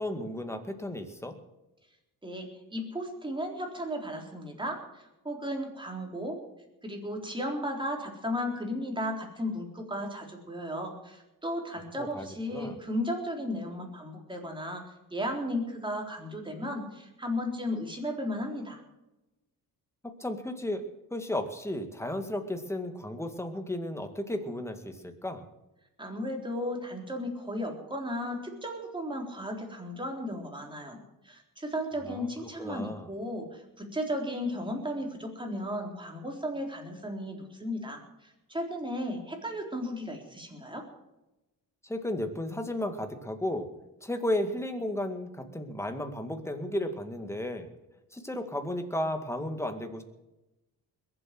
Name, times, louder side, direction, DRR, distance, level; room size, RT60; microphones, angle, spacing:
voice 1, 0.0-1.3 12.0-12.8 20.0-20.8 21.1-25.4 32.1-32.3 32.6-33.1 41.8-43.7 44.0-47.7 48.1-50.0, left 1 dB, 5° left, 6 dB, 2.0 m, -34 dB
voice 2, 2.2-6.4 6.8-14.8 15.1-18.8 26.0-31.0 31.2-38.0 38.5-40.8, equal, 15° right, 2 dB, 3.9 m, -35 dB
21.5 x 7.9 x 7.7 m, 0.98 s
cardioid pair, 120°, 36 cm